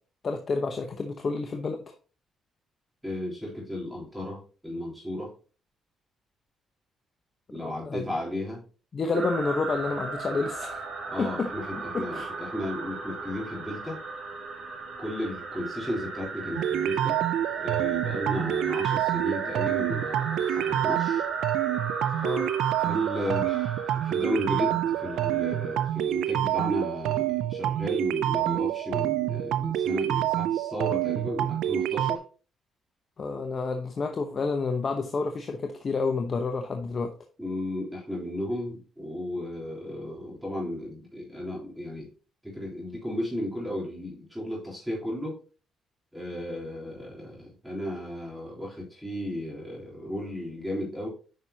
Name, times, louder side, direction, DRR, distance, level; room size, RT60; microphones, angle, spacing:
voice 1, 0.2-1.9 7.6-8.1 8.9-10.8 11.2-11.5 11.9-12.3 22.2-22.5 33.2-37.2, left 4 dB, 40° left, 5 dB, 0.8 m, -29 dB
voice 2, 3.0-5.3 7.5-8.6 11.1-14.0 15.0-17.2 17.6-21.2 22.1-22.4 22.8-32.2 37.4-42.1 42.4-45.4 46.1-51.1, left 1 dB, 5° right, -4 dB, 3.6 m, -34 dB
sound 1, 9.1-25.9, right 3 dB, 60° right, 3.1 m, -36 dB
sound 2, 16.6-32.2, right 12 dB, 85° right, 0.4 m, -27 dB
9.3 x 5.6 x 2.8 m, 0.37 s
cardioid pair, 90°, 0 cm